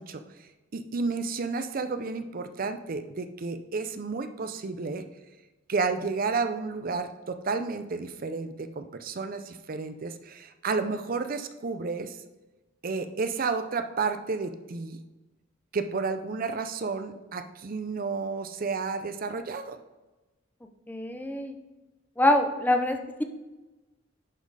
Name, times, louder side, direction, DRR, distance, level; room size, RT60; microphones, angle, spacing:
voice 1, 0.0-5.0 5.7-12.2 12.8-15.0 15.7-19.8, right 4 dB, 45° right, 9 dB, 0.5 m, -31 dB
voice 2, 20.9-21.5 22.2-23.2, left 1 dB, 10° left, 5 dB, 0.6 m, -25 dB
10.5 x 4.2 x 4.8 m, 1.1 s
head